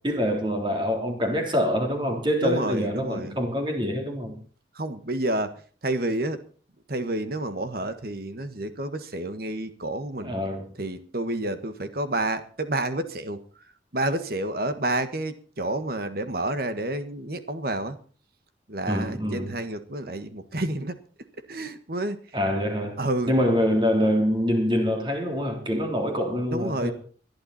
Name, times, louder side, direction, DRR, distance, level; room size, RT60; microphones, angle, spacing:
voice 1, 0.0-4.3 10.2-10.7 18.9-19.5 22.3-23.0 23.3-26.9, equal, 25° right, 4 dB, 3.5 m, -25 dB
voice 2, 2.4-3.4 4.7-5.6 5.8-6.4 6.9-10.3 10.8-13.4 13.9-18.0 18.7-21.0 21.5-22.2 23.0-23.3 26.5-26.9, right 1 dB, 55° right, 10 dB, 1.6 m, -29 dB
20.5 x 11.5 x 4.2 m, 0.42 s
head